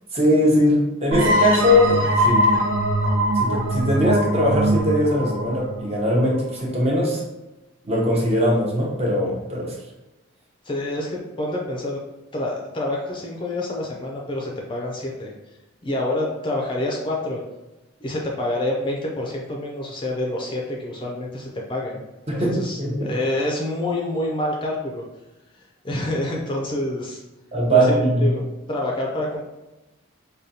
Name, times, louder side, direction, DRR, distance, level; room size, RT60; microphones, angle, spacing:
voice 1, 0.1-2.5 3.3-7.2 7.8-9.7 22.3-23.1 27.5-28.3, equal, 30° right, -2 dB, 0.7 m, -20 dB
sound 1, 1.1-6.6, equal, 70° right, 0.7 m, -22 dB
voice 2, 10.6-12.0 12.3-15.3 15.8-17.4 18.0-22.0 22.4-25.0 25.5-27.2 27.7-29.4, left 1 dB, 25° left, -1 dB, 0.4 m, -27 dB
5.0 x 2.3 x 2.7 m, 1.0 s
head